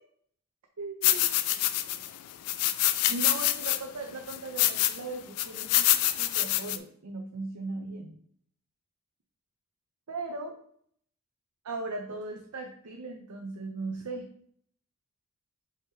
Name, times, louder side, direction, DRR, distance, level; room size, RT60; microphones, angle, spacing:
voice 1, 0.8-1.3 3.1-8.2 10.1-10.6 11.6-14.3, right 3 dB, 85° right, 2 dB, 0.6 m, -38 dB
sound 1, 1.0-2.1 2.5-3.8 4.3-5.0 5.4-6.8, left 13 dB, 90° left, 0.4 m, -26 dB
4.8 x 2.7 x 3.6 m, 0.64 s
head